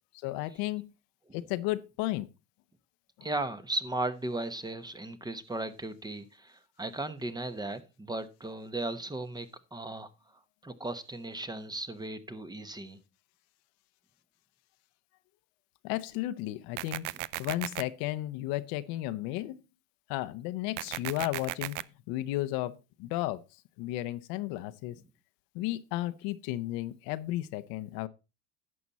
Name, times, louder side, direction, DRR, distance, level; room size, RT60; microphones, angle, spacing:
voice 1, 0.2-0.9 1.3-2.3 15.8-17.1 17.4-19.6 20.1-21.8 22.1-23.4 23.8-25.0 25.5-28.1, left 16 dB, 70° left, 0.9 m, -33 dB
voice 2, 3.2-10.1 10.6-13.0 17.1-17.2, right 2 dB, 10° right, 1.0 m, -36 dB
sound 1, 16.8-17.8 20.8-21.8, right 19 dB, 80° right, 0.5 m, -36 dB
11.0 x 7.0 x 4.1 m
supercardioid pair, 95°, 36 cm